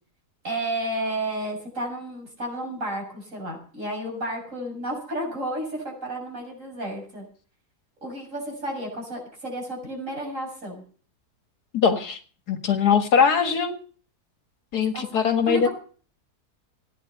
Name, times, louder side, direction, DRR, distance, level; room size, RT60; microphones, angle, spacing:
voice 1, 0.4-7.2 8.0-10.8 14.9-15.1 15.5-15.7, right 1 dB, 50° right, 1 dB, 7.3 m, -32 dB
voice 2, 11.7-12.2 12.5-13.8 14.7-15.7, left 6 dB, 80° left, 7 dB, 2.3 m, -21 dB
17.0 x 10.0 x 6.8 m, 0.42 s
omnidirectional pair, 1.7 m